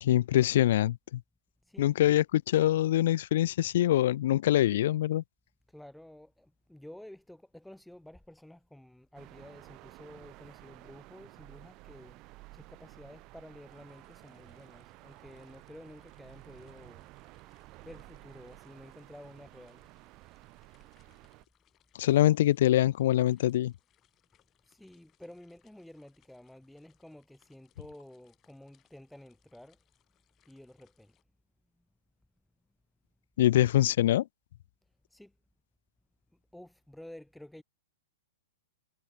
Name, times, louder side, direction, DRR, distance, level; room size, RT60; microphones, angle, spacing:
voice 1, 0.0-1.2 1.8-5.2 22.0-23.7 33.4-34.3, left 13 dB, 55° left, 0.3 m, -24 dB
voice 2, 5.7-17.1 17.8-19.9 24.6-29.8 30.5-31.2 35.1-35.3 36.5-37.6, left 1 dB, ahead, 1.0 m, -51 dB
sound 1, 9.1-21.4, right 22 dB, 35° right, 1.3 m, -53 dB
sound 2, 13.7-31.2, left 12 dB, 30° left, 6.2 m, -73 dB
figure-of-eight pair, 110°, 0 cm